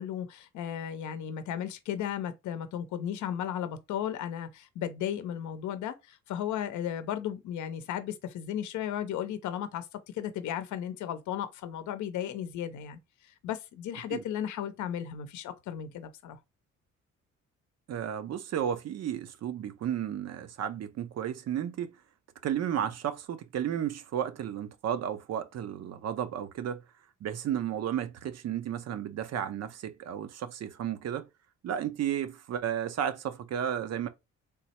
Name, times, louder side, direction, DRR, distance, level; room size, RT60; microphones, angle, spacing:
voice 1, 0.0-9.9 10.1-16.4, left 10 dB, 75° left, 0.6 m, -35 dB
voice 2, 17.9-22.0 22.4-26.8 27.2-31.3 31.6-34.1, right 9 dB, 55° right, 0.6 m, -33 dB
3.5 x 2.0 x 4.2 m
cardioid pair, 90°, 30 cm